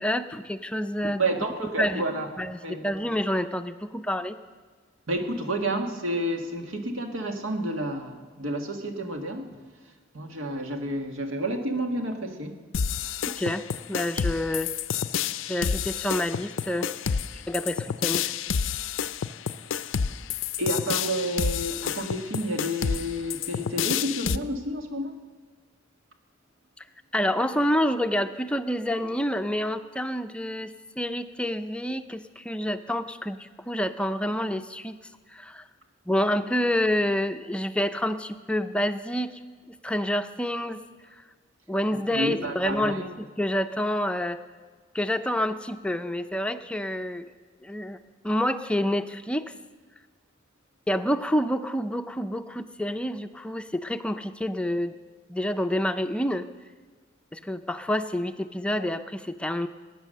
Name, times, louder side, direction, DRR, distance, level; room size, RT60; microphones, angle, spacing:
voice 1, 0.0-1.2 1.8-2.0 2.4-4.4 13.3-14.7 15.5-17.2 17.5-18.3 27.1-35.0 35.3-35.6 36.1-39.3 39.8-40.8 41.7-44.4 44.9-47.3 47.6-48.0 48.2-49.5 50.9-54.9 55.3-56.5 57.3-59.7, left 1 dB, 5° left, 8 dB, 0.5 m, -28 dB
voice 2, 1.2-2.3 2.6-2.9 5.1-9.6 10.1-12.6 20.6-25.2 41.9-43.1, right 1 dB, 90° right, 4 dB, 1.8 m, -30 dB
sound 1, 12.7-24.4, left 7 dB, 70° left, 0.5 m, -29 dB
19.0 x 9.4 x 6.6 m, 1.4 s
head